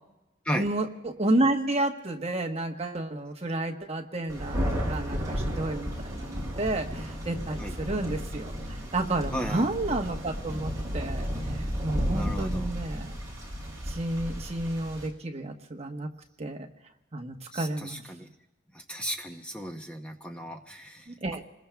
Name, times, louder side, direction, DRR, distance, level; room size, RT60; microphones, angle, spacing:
voice 1, 0.5-8.5 8.9-13.2 13.9-16.1 16.4-16.7 17.1-18.0 21.1-21.4, right 2 dB, 35° right, 2 dB, 1.2 m, -31 dB
Thunder, 4.3-15.1, equal, 15° right, 5.1 m, -33 dB
voice 2, 9.3-9.7 12.0-12.7 17.5-18.3 18.7-21.2, equal, 5° left, 3 dB, 0.7 m, -35 dB
27.5 x 20.5 x 2.3 m, 0.98 s
head